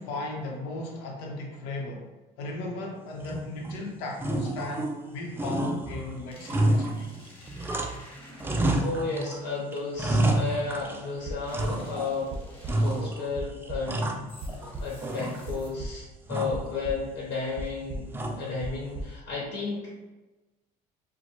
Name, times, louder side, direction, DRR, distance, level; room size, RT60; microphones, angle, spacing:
voice 1, 0.0-2.1 2.4-7.1, left 2 dB, 80° left, 0 dB, 0.8 m, -36 dB
sound 1, 3.2-3.8 4.2-5.1 5.4-8.1 8.4-9.4 9.7-11.1 11.5-12.2 12.7-13.3 13.6-14.7 15.0-15.7 16.3-16.7 18.1-18.6, right 1 dB, 10° right, 0.4 m, -29 dB
sound 2, 5.9-9.1 11.5-13.3 14.3-16.0, left 1 dB, 30° left, 1.0 m, -50 dB
voice 2, 8.4-12.4 12.8-14.0 14.5-20.0, left 4 dB, 60° left, -4 dB, 1.1 m, -33 dB
sound 3, 10.7-10.8 11.1-12.0 12.3-12.9 13.4-14.0 14.4-15.2 15.5-16.1 16.5-17.3 17.6-19.1, right 1 dB, 30° right, 0.8 m, -38 dB
4.3 x 2.2 x 2.9 m, 1.1 s
supercardioid pair, 105°, 18 cm